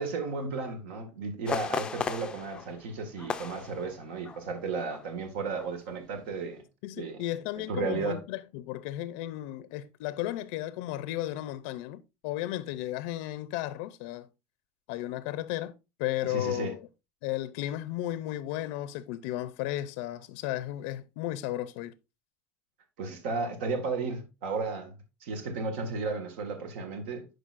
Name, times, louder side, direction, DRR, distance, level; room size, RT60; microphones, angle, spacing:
voice 1, 0.0-6.6 7.0-7.2 7.6-8.2 16.2-16.7 23.0-24.9 25.2-27.3, right 4 dB, 80° right, 1.7 m, -34 dB
sound 1, 1.5-4.5 4.8-5.1 5.5-5.9 6.3-6.4, left 5 dB, 15° left, 0.4 m, -36 dB
voice 2, 6.8-14.3 14.9-15.7 16.0-16.9 17.2-21.9, left 14 dB, 70° left, 0.5 m, -34 dB
11.5 x 5.0 x 2.5 m
cardioid pair, 170°, 6 cm